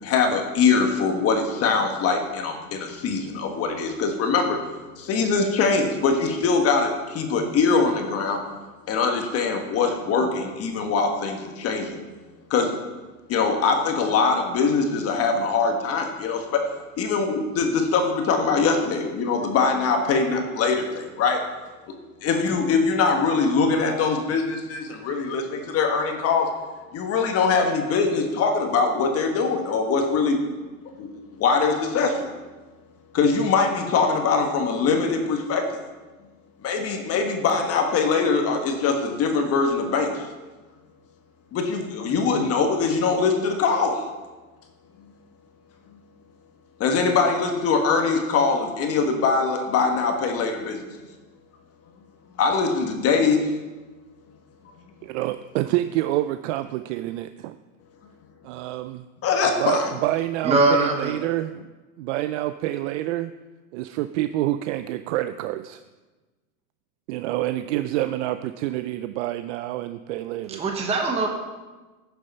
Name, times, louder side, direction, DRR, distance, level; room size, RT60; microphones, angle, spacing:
voice 1, 0.0-4.6 5.0-8.4 8.9-12.0 12.5-12.7 13.3-16.6 17.0-21.4 22.2-26.5 26.9-30.5 31.0-31.1 31.4-32.3 33.1-35.8 36.6-40.3 41.5-44.0 46.8-50.9 52.4-53.4 59.2-59.9, left 4 dB, 35° left, 4 dB, 1.4 m, -22 dB
voice 2, 55.0-57.6 58.4-59.0 59.6-61.7 62.0-63.3 63.7-65.8 67.1-70.6, right 15 dB, 55° right, 11 dB, 0.5 m, -27 dB
voice 3, 60.4-61.1 70.5-71.3, right 2 dB, 15° right, 2 dB, 1.0 m, -21 dB
10.0 x 6.8 x 5.3 m, 1.2 s
supercardioid pair, 125°, 43 cm